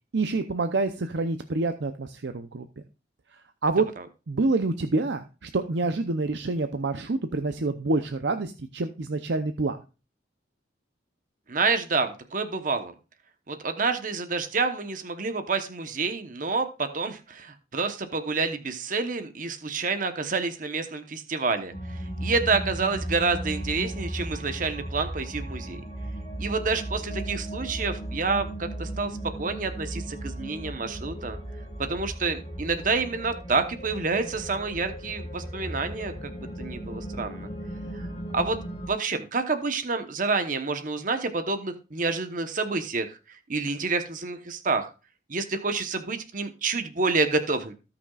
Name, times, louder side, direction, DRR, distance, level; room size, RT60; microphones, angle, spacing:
voice 1, 0.1-2.7 3.6-3.9 4.3-9.8, right 3 dB, 70° right, 7 dB, 0.7 m, -27 dB
voice 2, 11.5-12.9 13.5-21.7 22.0-25.8 26.4-31.4 31.8-37.5 37.9-38.1 38.3-38.6 38.9-43.2 43.5-44.9 45.3-47.7, right 4 dB, 45° right, 8 dB, 1.0 m, -28 dB
sound 1, 21.7-38.9, right 1 dB, 35° left, 2.7 m, -36 dB
17.5 x 6.0 x 2.4 m, 0.31 s
head